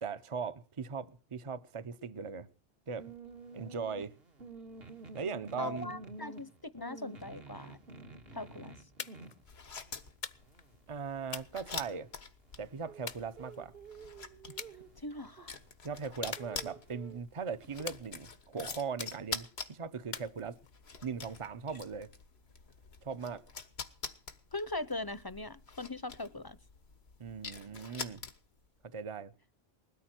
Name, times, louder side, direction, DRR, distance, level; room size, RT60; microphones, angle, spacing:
voice 1, 0.0-2.5 2.9-3.1 3.5-4.1 5.1-5.9 10.9-12.1 12.6-13.7 15.8-20.6 21.0-22.1 23.0-23.4 27.2-28.2 28.9-29.3, right 5 dB, 35° right, 0.8 m, -39 dB
sound 1, 3.0-17.8, right 3 dB, 70° right, 2.3 m, -51 dB
voice 2, 5.6-7.8 8.3-8.8 15.0-15.6 24.5-26.6, left 2 dB, 25° left, 0.8 m, -40 dB
sound 2, 9.0-9.4 10.2-10.7 11.3-12.3 13.1-13.9 14.6-14.8 15.2-15.5 16.3-17.1 17.9-18.5 19.0-19.5 20.1-20.9, left 6 dB, 50° left, 0.9 m, -45 dB
sound 3, 9.4-28.7, left 5 dB, 90° left, 1.7 m, -46 dB
20.5 x 13.5 x 4.4 m
omnidirectional pair, 1.0 m